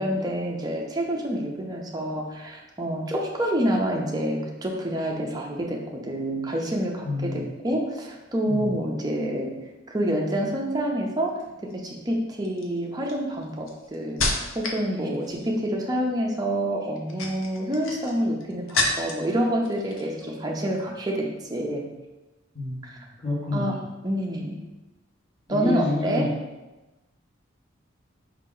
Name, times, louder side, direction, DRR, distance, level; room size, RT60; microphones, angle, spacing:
voice 1, 0.0-9.5 9.9-21.9 22.8-23.0 23.5-23.8 24.0-24.6 25.5-26.3, equal, 20° right, 0 dB, 0.6 m, -27 dB
voice 2, 7.0-7.5 8.5-8.8 22.5-23.9 25.5-26.3, left 1 dB, 25° left, -9 dB, 1.1 m, -29 dB
sound 1, 11.4-11.7 12.4-14.8 15.1-15.6 16.9-19.3 19.6-20.3 20.6-20.8, left 2 dB, 75° left, 0.7 m, -30 dB
5.0 x 2.8 x 3.7 m, 1.1 s
head